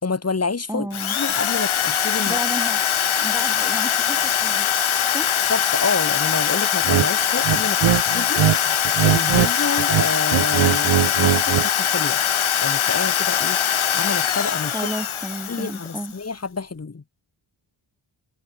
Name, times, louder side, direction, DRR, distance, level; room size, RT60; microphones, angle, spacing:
voice 1, 0.0-0.9 1.1-2.4 5.5-12.2 12.6-14.7 15.5-17.0, left 4 dB, 30° left, 1.8 m, -28 dB
voice 2, 0.7-1.2 2.3-2.9 3.2-4.7 5.1-5.3 14.7-16.1, right 1 dB, 5° right, 1.0 m, -32 dB
Drill, 0.9-16.1, left 9 dB, 85° left, 1.6 m, -22 dB
sound 1, 6.8-7.1 7.4-8.6 8.8-9.5 9.8-11.7, right 12 dB, 70° right, 0.7 m, -20 dB
wide cardioid pair, 155°, 47 cm